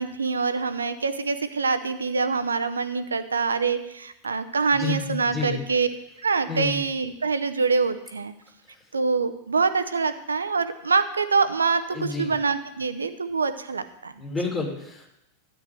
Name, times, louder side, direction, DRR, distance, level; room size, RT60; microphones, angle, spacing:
voice 1, 0.0-5.9 6.2-8.3 8.9-14.1, right 4 dB, 75° right, 11 dB, 0.7 m, -25 dB
voice 2, 4.7-5.6 6.5-6.8 11.9-12.3 14.2-15.1, left 4 dB, 15° left, 0 dB, 3.3 m, -30 dB
13.0 x 9.5 x 3.4 m, 0.84 s
figure-of-eight pair, 90°, 0 cm